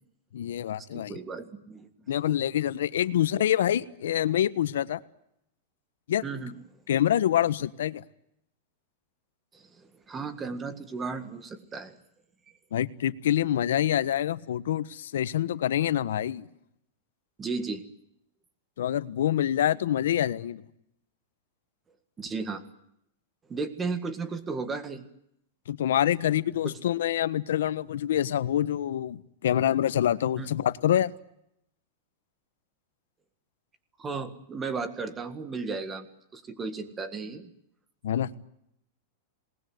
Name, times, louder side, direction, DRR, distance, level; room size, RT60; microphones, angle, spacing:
voice 1, 0.3-1.2 2.1-5.0 6.1-6.3 6.9-8.0 12.7-16.5 18.8-20.6 25.7-31.1 38.0-38.3, left 11 dB, 85° left, 15 dB, 1.3 m, -26 dB
voice 2, 0.9-1.9 6.2-6.5 9.5-11.9 17.4-17.8 22.2-22.6 23.5-25.1 26.6-26.7 30.4-30.5 34.0-36.1 36.3-37.5, right 4 dB, 10° right, 12 dB, 1.7 m, -34 dB
27.5 x 20.0 x 9.4 m, 0.79 s
supercardioid pair, 175°, 0 cm